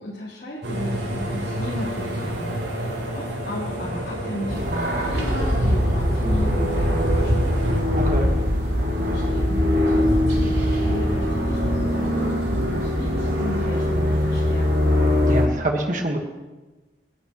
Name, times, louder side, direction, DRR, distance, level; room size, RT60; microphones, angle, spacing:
voice 1, 0.0-7.3 7.7-8.0 9.0-14.6, left 1 dB, 55° left, -10 dB, 3.9 m, -34 dB
sound 1, 0.6-7.8, right 1 dB, 75° right, 4.0 m, -30 dB
sound 2, 4.5-15.5, left 1 dB, 60° right, 4.0 m, -21 dB
voice 2, 7.9-8.3 15.3-16.2, right 1 dB, 45° right, 2 dB, 1.7 m, -25 dB
29.0 x 12.0 x 3.2 m, 1.2 s
head